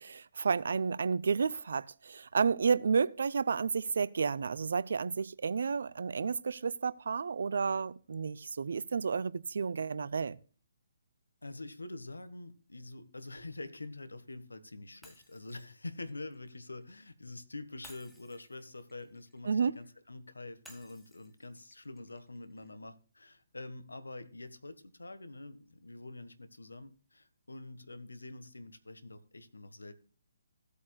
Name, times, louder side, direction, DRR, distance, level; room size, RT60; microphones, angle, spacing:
voice 1, 0.0-10.4 19.4-19.8, right 5 dB, 60° right, 0.5 m, -31 dB
voice 2, 11.4-29.9, left 2 dB, 80° left, 1.4 m, -46 dB
Shatter, 15.0-17.1 17.8-19.9 20.6-22.7, left 1 dB, 5° left, 1.6 m, -60 dB
16.5 x 8.4 x 2.3 m
figure-of-eight pair, 135°, 0 cm